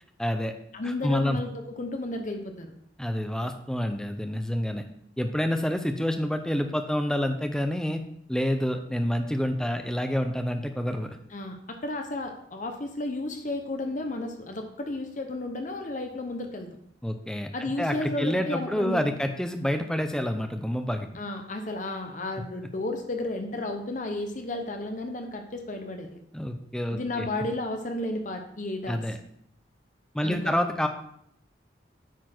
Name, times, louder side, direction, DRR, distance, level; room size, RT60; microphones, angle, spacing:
voice 1, 0.2-0.5 0.8-1.4 3.0-4.8 5.2-8.0 8.3-11.2 17.0-21.1 26.3-27.3 28.9-29.2 30.1-30.9, equal, 5° left, 6 dB, 0.5 m, -28 dB
voice 2, 0.7-2.7 11.3-16.7 17.5-19.0 21.1-26.2 26.9-29.0 30.2-30.7, left 2 dB, 40° left, 5 dB, 0.8 m, -33 dB
9.3 x 4.2 x 4.4 m, 0.70 s
head